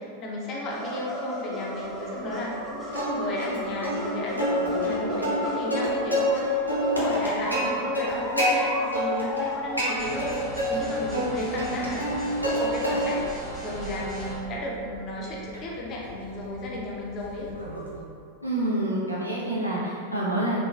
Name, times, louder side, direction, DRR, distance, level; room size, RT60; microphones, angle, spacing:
voice 1, 0.0-2.6 2.9-12.1 12.4-13.2 13.6-17.5, left 1 dB, 35° left, -3 dB, 0.5 m, -34 dB
sound 1, 0.7-10.3 10.5-10.6 11.0-11.1 11.6-11.7 12.0-12.1 12.6-12.7, equal, 15° right, 0.5 m, -35 dB
Plucked string instrument, 2.9-3.6 3.8-4.0 4.4-6.4 6.7-8.5 8.9-9.5 9.8-10.8 11.1-12.6 12.8-13.3 13.8-18.0, equal, 90° left, 0.6 m, -28 dB
sound 2, 10.0-14.4, right 1 dB, ahead, 1.0 m, -37 dB
voice 2, 18.4-20.6, right 1 dB, 90° right, -7 dB, 0.6 m, -27 dB
3.0 x 2.3 x 2.2 m, 2.4 s
figure-of-eight pair, 90°, 0 cm